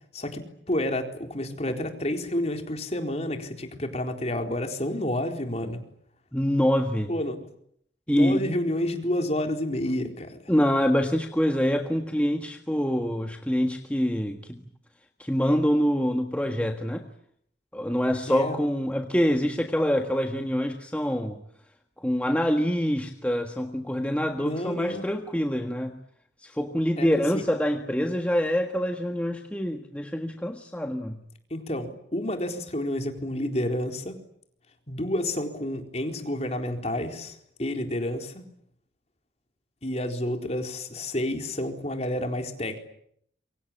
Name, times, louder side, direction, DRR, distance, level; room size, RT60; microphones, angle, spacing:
voice 1, 0.1-5.8 7.1-7.4 8.1-10.5 18.3-18.6 24.4-25.0 27.0-27.1 27.3-27.4 31.5-34.1 34.9-38.4 39.8-42.8, left 1 dB, 35° left, 4 dB, 4.1 m, -30 dB
voice 2, 6.3-7.1 8.1-8.4 10.5-14.6 15.2-17.0 17.7-21.4 22.0-26.0 26.4-31.2, equal, 5° left, 4 dB, 1.6 m, -25 dB
27.0 x 24.5 x 8.8 m, 0.69 s
head